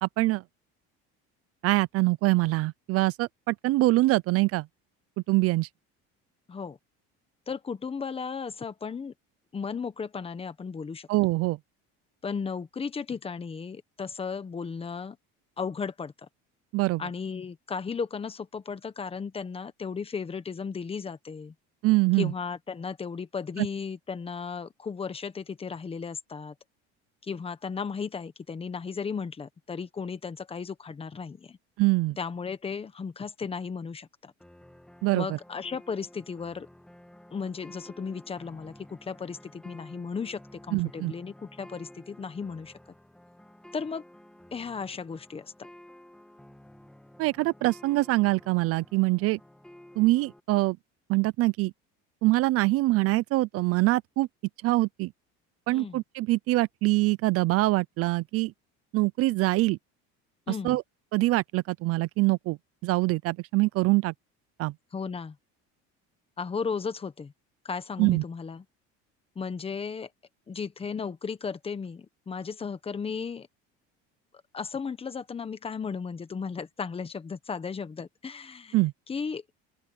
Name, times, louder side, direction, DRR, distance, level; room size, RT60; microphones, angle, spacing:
voice 1, 0.0-0.4 1.6-4.7 5.3-5.7 11.1-11.6 16.7-17.0 21.8-22.3 23.6-23.7 31.8-32.2 35.0-35.4 40.7-41.1 47.2-49.4 50.0-50.8 51.1-51.7 52.2-54.3 54.6-55.1 55.7-58.5 58.9-59.8 60.5-60.8 61.1-62.6 62.8-64.1 64.6-64.7 68.0-68.2 78.7-78.9, right 20 dB, 55° right, 0.5 m, -24 dB
voice 2, 7.5-9.1 9.5-11.1 12.2-15.2 15.6-16.3 17.0-21.5 22.2-26.5 27.2-31.6 32.2-34.3 35.1-36.7 37.3-42.7 43.7-44.0 44.5-45.5 55.7-56.0 60.5-60.8 64.9-65.3 66.4-67.3 67.6-68.6 69.3-70.1 70.5-73.5 74.5-78.8 79.1-79.4, left 5 dB, 20° left, 1.3 m, -35 dB
sound 1, 34.4-50.4, left 1 dB, 5° left, 2.2 m, -52 dB
open air
cardioid pair, 140°, 29 cm